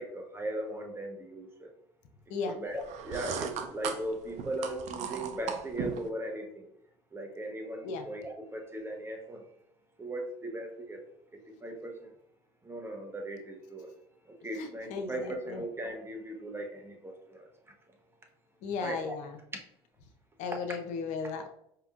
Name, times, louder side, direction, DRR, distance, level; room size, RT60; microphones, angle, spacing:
voice 1, 0.0-1.5 2.5-6.6 7.1-9.4 10.0-11.0 11.6-12.1 12.7-13.9 14.4-17.4 18.8-19.0, right 1 dB, 20° right, 3 dB, 1.0 m, -38 dB
sound 1, 2.8-6.1, right 7 dB, 60° right, 0.6 m, -37 dB
voice 2, 14.6-15.6 18.6-19.4 20.4-21.5, left 5 dB, 70° left, 6 dB, 0.6 m, -36 dB
5.0 x 2.9 x 2.4 m, 0.74 s
supercardioid pair, 75°, 13 cm